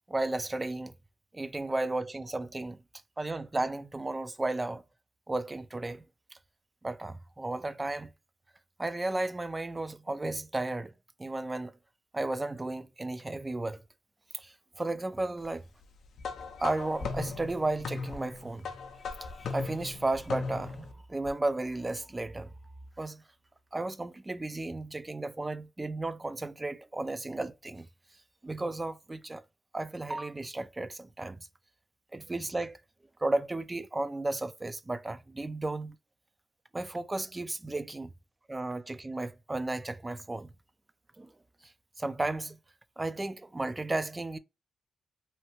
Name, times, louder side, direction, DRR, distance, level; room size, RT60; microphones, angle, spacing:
voice 1, 0.1-0.9 1.3-2.8 3.2-4.8 5.3-6.0 6.3-6.4 6.8-8.1 8.8-10.9 11.2-11.8 12.1-13.8 14.3-15.7 16.6-18.7 19.2-22.5 23.0-23.2 23.7-27.9 28.4-29.4 29.7-31.5 32.1-32.8 33.2-36.0 36.7-38.1 38.5-40.5 41.2-41.3 41.6-42.6 43.0-44.4, right 2 dB, 20° right, 0.4 m, -34 dB
sound 1, 16.2-20.9, left 4 dB, 75° left, 0.5 m, -38 dB
sound 2, 18.1-20.8 21.1-21.5 21.8-22.3 22.7-23.1, left 1 dB, 15° left, 0.7 m, -49 dB
2.8 x 2.3 x 3.0 m
cardioid pair, 65°, 0 cm